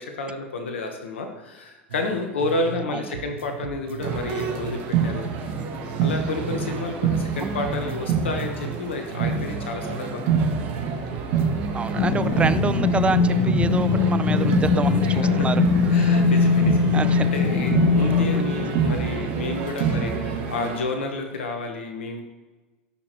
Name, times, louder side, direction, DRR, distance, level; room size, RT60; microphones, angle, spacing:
voice 1, 0.0-5.2 6.0-10.4 15.2-15.5 15.9-17.0 17.3-22.2, left 3 dB, 85° left, 4 dB, 1.3 m, -30 dB
sound 1, 1.9-2.9 3.1-6.9 7.1-10.9 11.1-11.9, right 8 dB, 80° right, 0.8 m, -38 dB
sound 2, 4.0-20.8, right 6 dB, 55° right, 2.1 m, -27 dB
voice 2, 11.7-15.6 15.9-16.2 16.9-17.3 18.3-18.4, right 5 dB, 20° right, 14 dB, 0.5 m, -28 dB
sound 3, 12.0-18.7, left 5 dB, 65° left, 1.0 m, -21 dB
15.5 x 6.1 x 3.2 m, 1.2 s
hypercardioid pair, 95°, 6 cm